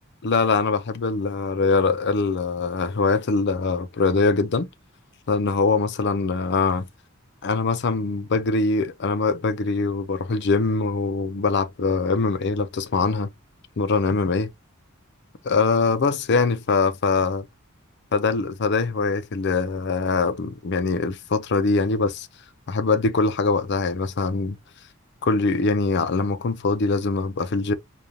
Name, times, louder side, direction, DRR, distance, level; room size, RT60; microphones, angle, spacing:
voice 1, 0.2-4.7 5.3-6.9 7.4-13.3 13.8-14.5 15.4-17.4 18.1-22.3 22.7-24.6 25.2-27.7, left 4 dB, 55° left, 0.5 m, -23 dB
5.0 x 2.4 x 2.7 m
head